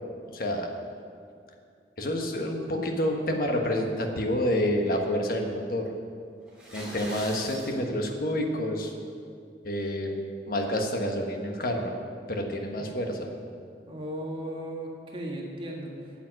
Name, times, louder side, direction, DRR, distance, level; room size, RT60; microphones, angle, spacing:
voice 1, 0.3-0.7 2.0-5.9 6.7-8.9 9.6-10.2 10.5-11.9 12.3-13.3, left 1 dB, 55° left, 3 dB, 1.4 m, -28 dB
sound 1, 6.5-7.7, right 1 dB, 5° right, 3.2 m, -41 dB
voice 2, 13.9-16.2, right 1 dB, 30° right, -1 dB, 1.6 m, -36 dB
9.4 x 9.1 x 7.6 m, 2.3 s
head